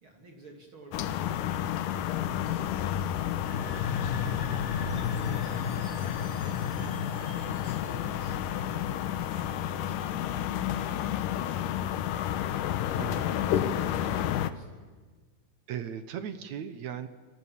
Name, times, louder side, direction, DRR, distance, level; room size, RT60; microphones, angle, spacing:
voice 1, 0.0-4.5 4.9-5.9 6.3-12.5 12.8-14.9, right 2 dB, 40° right, 2 dB, 3.4 m, -50 dB
sound 1, 0.9-14.5, left 11 dB, 90° left, 2.6 m, -31 dB
sound 2, 3.3-10.9, left 6 dB, 45° left, 1.1 m, -36 dB
Chime, 4.9-9.1, equal, 10° left, 6.8 m, -55 dB
voice 2, 15.7-17.1, right 9 dB, 65° right, 11 dB, 2.3 m, -37 dB
29.0 x 27.5 x 7.3 m, 1.4 s
omnidirectional pair, 3.7 m